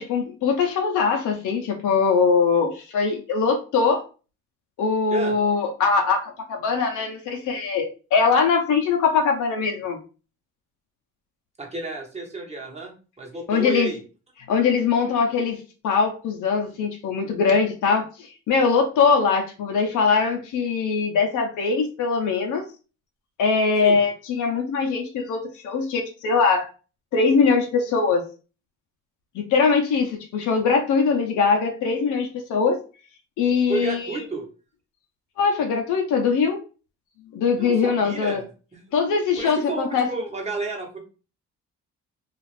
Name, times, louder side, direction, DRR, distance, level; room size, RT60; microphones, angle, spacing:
voice 1, 0.0-4.0 4.8-10.0 13.5-13.9 14.5-22.7 23.4-26.7 27.1-28.2 29.3-32.8 33.4-34.2 35.4-36.6 37.3-38.4 38.9-40.1, left 5 dB, 75° left, 3 dB, 0.7 m, -22 dB
voice 2, 11.6-14.0 23.8-24.0 33.7-34.5 37.6-38.5 38.7-38.8 39.4-41.0, right 3 dB, 20° right, 0 dB, 1.0 m, -31 dB
2.5 x 2.4 x 3.2 m, 0.34 s
cardioid pair, 90°, 30 cm